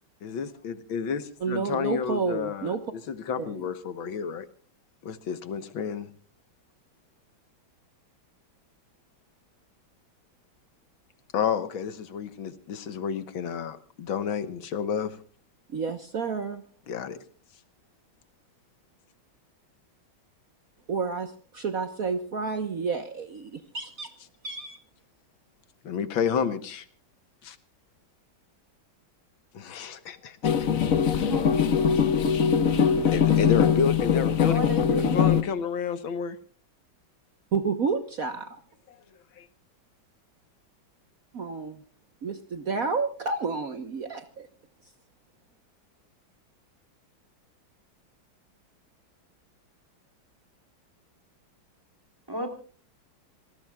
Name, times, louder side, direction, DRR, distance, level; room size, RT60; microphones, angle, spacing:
voice 1, 0.2-2.8 3.1-4.5 5.0-6.1 11.3-15.2 16.9-17.2 25.8-26.9 27.4-27.6 29.5-30.5 31.1-31.5 33.1-36.4 39.4-39.5, left 7 dB, 75° left, 12 dB, 2.0 m, -30 dB
voice 2, 1.4-2.8 3.4-3.7 15.7-16.6 20.9-24.1 24.4-24.8 37.5-38.6 41.3-41.8 42.2-44.5, right 5 dB, 50° right, 9 dB, 1.4 m, -30 dB
sound 1, 30.4-35.4, left 7 dB, 50° left, 1.4 m, -22 dB
voice 3, 31.0-31.6 32.7-32.8 34.4-35.3 52.3-52.5, right 1 dB, 10° right, 6 dB, 3.4 m, -33 dB
27.5 x 19.0 x 2.3 m, 0.40 s
omnidirectional pair, 2.2 m